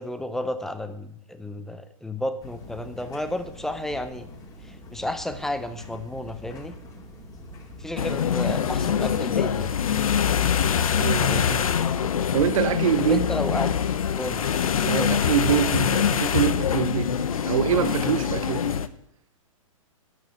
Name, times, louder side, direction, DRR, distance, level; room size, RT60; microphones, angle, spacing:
voice 1, 0.0-4.3 4.6-6.7 7.8-9.7 13.0-13.8 14.2-14.6 15.0-15.2, left 1 dB, ahead, 10 dB, 0.6 m, -32 dB
sound 1, 2.4-12.1, left 1 dB, 20° left, 2.3 m, -44 dB
sound 2, 8.0-18.9, left 8 dB, 80° left, 0.8 m, -24 dB
voice 2, 10.9-11.8 12.3-13.2 14.8-17.1 17.4-18.8, right 8 dB, 65° right, 11 dB, 0.9 m, -25 dB
9.3 x 8.9 x 6.6 m, 0.76 s
hypercardioid pair, 140°, 18 cm